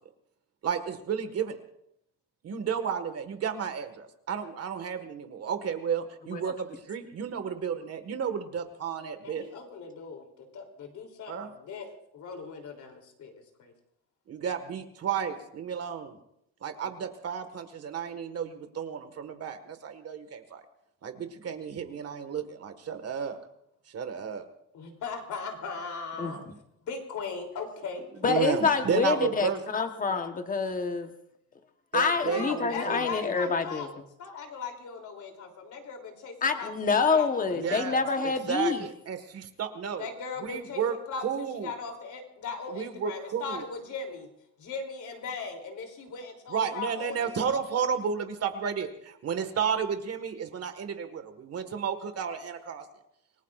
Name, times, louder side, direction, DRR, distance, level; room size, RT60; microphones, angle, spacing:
voice 1, 0.6-1.6 2.4-9.4 11.3-11.5 14.3-16.2 16.6-20.6 21.0-23.4 23.9-24.5 26.2-26.4 28.2-29.6 31.9-33.1 37.5-40.1 40.4-40.9 41.2-41.7 42.7-43.6 46.5-52.9, right 7 dB, 50° right, 8 dB, 1.7 m, -32 dB
voice 2, 9.2-13.7 24.7-26.4 26.8-28.5 32.2-33.9 34.2-38.0 40.0-44.3 44.6-47.6, left 4 dB, 65° left, 3 dB, 3.2 m, -39 dB
voice 3, 28.2-31.1 31.9-33.9 36.4-38.8, left 5 dB, 25° left, 6 dB, 1.1 m, -27 dB
27.0 x 19.0 x 2.5 m, 0.76 s
cardioid pair, 155°, 33 cm